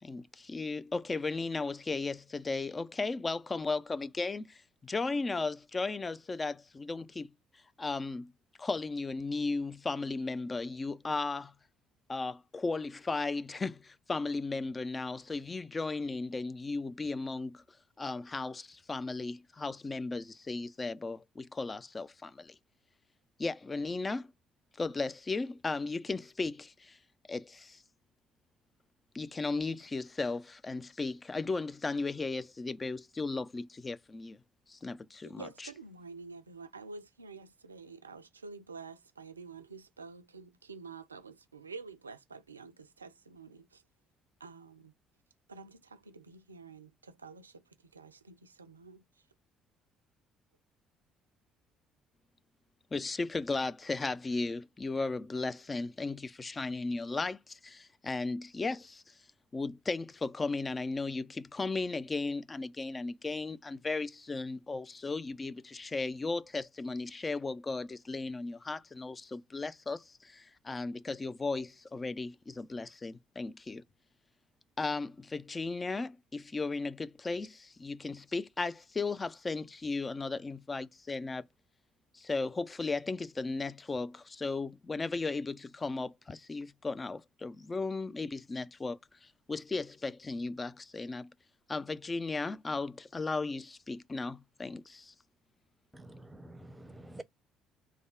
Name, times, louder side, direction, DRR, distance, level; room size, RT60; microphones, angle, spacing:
voice 1, 0.0-7.3 7.8-8.3 8.6-11.5 12.1-17.6 18.0-22.6 23.4-24.3 24.8-27.0 27.3-27.8 29.1-34.4 34.7-35.4 52.9-59.1 59.5-73.8 74.8-81.5 82.1-91.3 91.7-95.1, left 3 dB, 25° left, 0.5 m, -36 dB
voice 2, 35.2-43.8 44.4-44.9 45.5-49.3, right 4 dB, 90° right, 0.4 m, -49 dB
voice 3, 95.9-97.2, right 1 dB, 10° right, 0.8 m, -48 dB
3.3 x 2.2 x 3.7 m
figure-of-eight pair, 50°, 0 cm